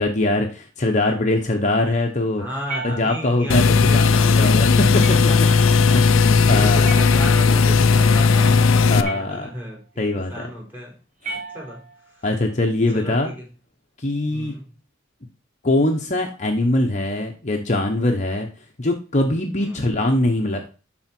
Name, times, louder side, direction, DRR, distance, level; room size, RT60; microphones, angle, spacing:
voice 1, 0.0-2.4 2.8-6.9 8.9-9.5 10.0-10.5 11.3-11.4 12.2-13.3 14.0-14.6 15.6-18.5 18.8-20.7, left 2 dB, 35° left, 2 dB, 1.1 m, -22 dB
voice 2, 2.4-5.5 5.9-9.8 10.3-11.0 11.3-11.8 12.1-12.2 12.9-13.4 14.3-14.7 19.6-19.9, left 1 dB, 10° right, -3 dB, 4.2 m, -34 dB
sound 1, 2.7-3.6 5.0-5.6 6.9-7.7 9.0-9.8 11.2-12.1, right 3 dB, 40° right, 2.0 m, -35 dB
sound 2, 3.5-9.0, left 4 dB, 80° left, 0.6 m, -16 dB
12.0 x 4.4 x 4.5 m, 0.34 s
head